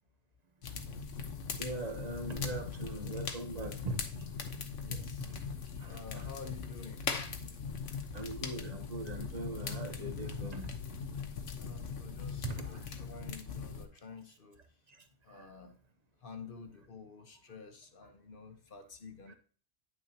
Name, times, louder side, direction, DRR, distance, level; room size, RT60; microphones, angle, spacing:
sound 1, 0.6-13.9, left 5 dB, 80° left, 1.2 m, -40 dB
voice 1, 1.6-4.0 4.9-5.3 5.8-6.2 8.1-10.7 12.4-13.3 15.3-15.6, right 2 dB, 35° right, 1.0 m, -41 dB
voice 2, 4.8-5.3 5.9-7.0 11.5-14.6 15.2-15.7 16.2-19.3, left 4 dB, 50° left, 1.1 m, -49 dB
9.4 x 6.3 x 2.8 m
omnidirectional pair, 1.2 m